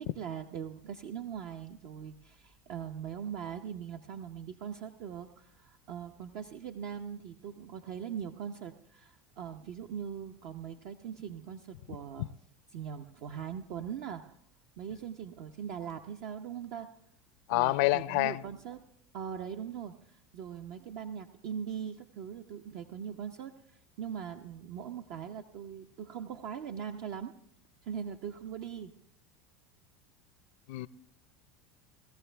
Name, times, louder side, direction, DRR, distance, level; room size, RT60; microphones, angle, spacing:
voice 1, 0.0-12.3 12.7-14.4 14.8-16.9 17.5-18.8 19.1-27.3 27.8-28.9, right 8 dB, 60° right, 0.7 m, -41 dB
voice 2, 17.5-18.4 30.7-30.9, left 20 dB, 65° left, 0.4 m, -27 dB
18.0 x 13.5 x 3.4 m
hypercardioid pair, 95°, 7 cm